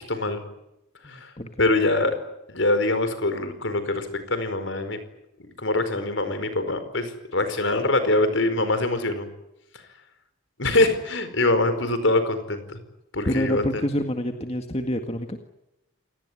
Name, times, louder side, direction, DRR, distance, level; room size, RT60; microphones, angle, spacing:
voice 1, 0.1-0.4 1.0-1.3 1.6-2.2 2.5-5.0 5.6-9.3 9.7-9.8 10.6-12.8 13.1-13.8, left 2 dB, 70° left, 10 dB, 4.8 m, -24 dB
voice 2, 1.0-1.6 13.3-15.4, equal, 30° left, 5 dB, 1.8 m, -27 dB
28.5 x 18.5 x 9.9 m, 0.89 s
head